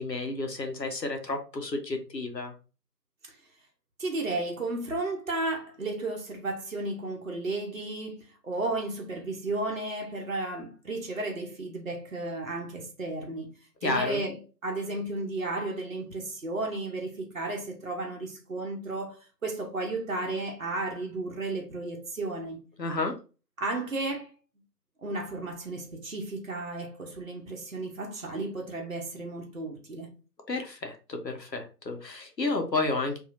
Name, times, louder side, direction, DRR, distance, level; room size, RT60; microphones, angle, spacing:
voice 1, 0.0-2.5 13.8-14.2 22.8-23.1 30.5-33.2, left 3 dB, 85° left, 1.0 m, -31 dB
voice 2, 4.0-13.5 13.8-22.6 23.6-24.3 25.0-30.1, right 2 dB, 55° right, 0.9 m, -33 dB
4.1 x 2.7 x 2.4 m
figure-of-eight pair, 160°, 49 cm